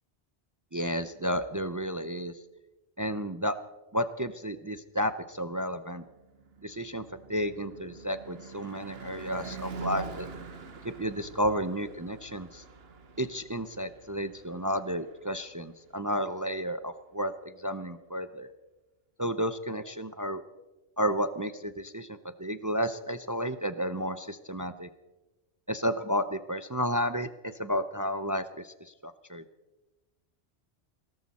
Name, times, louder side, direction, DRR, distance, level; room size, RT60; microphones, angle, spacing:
voice 1, 0.7-2.3 3.0-3.6 3.9-6.0 6.6-7.0 7.3-10.3 10.8-12.6 13.2-18.5 19.2-20.4 21.0-22.1 22.4-24.9 25.7-29.4, equal, 25° right, 11 dB, 0.5 m, -32 dB
Car passing by / Truck / Engine, 5.7-15.9, right 4 dB, 65° right, 1.4 m, -45 dB
19.0 x 18.0 x 4.2 m, 1.1 s
omnidirectional pair, 1.1 m